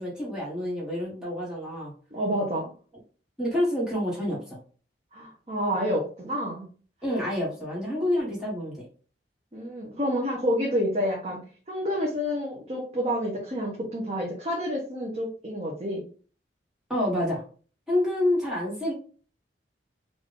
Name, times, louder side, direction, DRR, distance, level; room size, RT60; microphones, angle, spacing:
voice 1, 0.0-1.9 3.4-4.6 7.0-8.8 16.9-17.4 17.9-18.9, left 1 dB, 5° right, -6 dB, 1.6 m, -28 dB
voice 2, 2.1-2.7 5.1-6.7 9.5-11.4 11.7-16.0, equal, 35° right, -2 dB, 0.8 m, -29 dB
3.7 x 2.5 x 3.6 m, 0.40 s
head